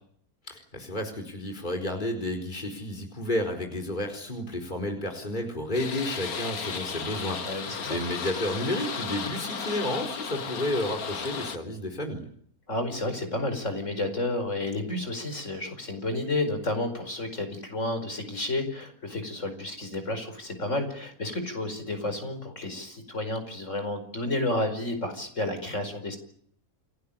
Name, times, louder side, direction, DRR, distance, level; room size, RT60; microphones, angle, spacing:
voice 1, 0.5-12.3, left 1 dB, 30° left, 3 dB, 4.6 m, -31 dB
sound 1, 5.7-11.6, left 6 dB, 80° left, 2.0 m, -35 dB
voice 2, 7.4-8.0 12.7-26.2, left 2 dB, 55° left, 7 dB, 5.3 m, -31 dB
29.5 x 19.0 x 8.7 m, 0.68 s
omnidirectional pair, 1.5 m